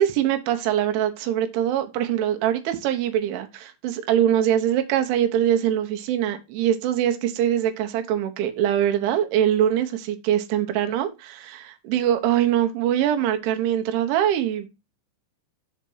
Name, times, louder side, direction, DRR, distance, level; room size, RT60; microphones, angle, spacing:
voice 1, 0.0-14.7, right 10 dB, 85° right, 3.4 m, -23 dB
7.3 x 4.3 x 5.5 m
omnidirectional pair, 5.3 m